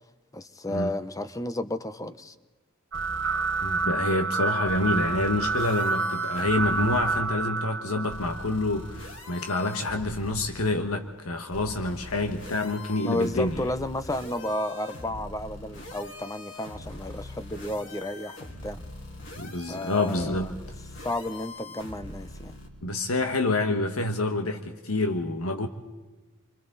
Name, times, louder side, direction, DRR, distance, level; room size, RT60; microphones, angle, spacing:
voice 1, 0.3-2.3 13.0-18.8 19.7-20.6 21.0-22.6, left 1 dB, 15° left, 0.9 m, -32 dB
sound 1, 2.9-3.8 4.6-7.2 8.1-10.7 11.5-22.7, left 2 dB, 60° left, 3.8 m, -42 dB
sound 2, 2.9-9.0, right 4 dB, 60° right, 1.6 m, -29 dB
voice 2, 3.6-13.6 19.4-20.5 22.8-25.7, left 2 dB, 80° left, 1.5 m, -27 dB
28.5 x 25.0 x 4.1 m
head